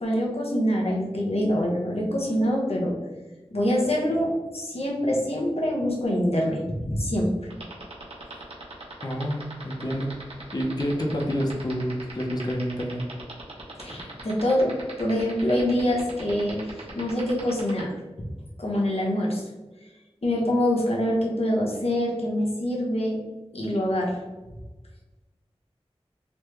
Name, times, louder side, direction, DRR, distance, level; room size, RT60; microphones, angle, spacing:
voice 1, 0.0-2.9 3.5-7.3 13.8-16.6 16.9-18.0 18.6-19.4 20.2-23.2 23.5-24.2, equal, 70° left, -3 dB, 0.9 m, -25 dB
sound 1, 7.5-17.8, right 2 dB, 65° right, 0.8 m, -40 dB
voice 2, 9.0-10.1 10.5-13.0, equal, 40° left, 0 dB, 0.5 m, -28 dB
3.2 x 2.2 x 3.1 m, 1.1 s
wide cardioid pair, 40°, 11 cm